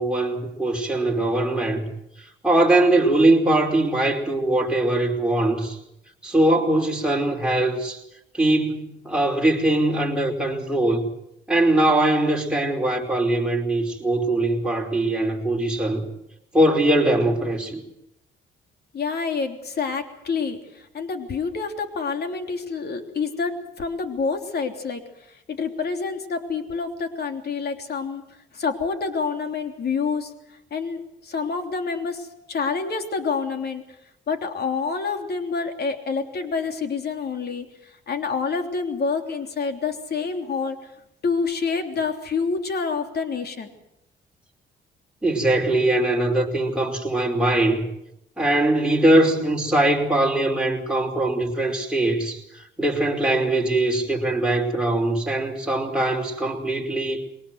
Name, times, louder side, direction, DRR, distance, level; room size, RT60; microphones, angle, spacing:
voice 1, 0.0-1.9 2.2-5.8 6.2-8.0 8.3-11.1 11.5-16.1 16.5-17.8 45.2-47.9 48.4-57.2, right 1 dB, 5° right, 4.8 m, -21 dB
voice 2, 18.9-25.0 25.3-28.2 28.5-33.8 34.3-40.8 41.2-43.7, left 5 dB, 55° left, 3.3 m, -27 dB
22.5 x 19.0 x 7.9 m
cardioid pair, 90°, 20 cm